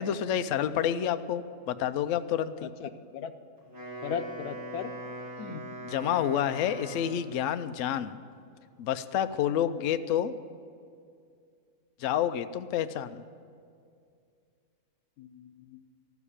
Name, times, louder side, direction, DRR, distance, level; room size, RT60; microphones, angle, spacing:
voice 1, 0.0-2.7 5.9-8.2 8.8-10.3 12.0-13.2, left 10 dB, 65° left, 10 dB, 0.8 m, -29 dB
voice 2, 2.6-3.3 4.0-4.9 5.4-5.6 15.2-15.8, left 7 dB, 90° left, 9 dB, 1.2 m, -38 dB
Wind instrument woodwind instrument, 3.6-7.4, right 1 dB, 35° right, 4.6 m, -41 dB
14.0 x 7.2 x 9.9 m, 2.3 s
omnidirectional pair, 1.6 m